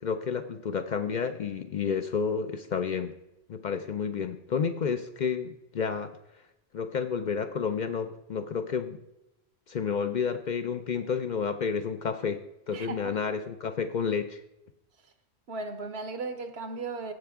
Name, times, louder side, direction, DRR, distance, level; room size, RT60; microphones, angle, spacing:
voice 1, 0.0-3.1 3.5-6.1 6.7-9.0 9.7-14.4, left 6 dB, 55° left, 8 dB, 0.6 m, -30 dB
voice 2, 12.7-13.1 15.5-17.1, right 3 dB, 75° right, 8 dB, 1.2 m, -36 dB
15.5 x 5.7 x 3.6 m, 0.90 s
omnidirectional pair, 1.1 m